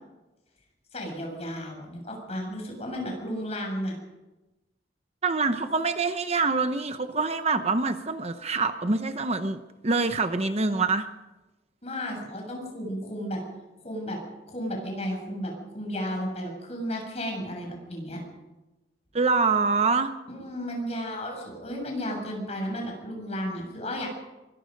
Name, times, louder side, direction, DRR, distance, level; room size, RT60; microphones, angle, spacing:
voice 1, 0.9-3.9 11.8-13.4 13.8-14.2 14.5-18.2 20.3-24.1, equal, 35° left, 1 dB, 7.5 m, -33 dB
voice 2, 5.2-11.1 19.1-20.1, right 4 dB, 35° right, 8 dB, 0.9 m, -25 dB
24.0 x 22.0 x 5.3 m, 1.1 s
head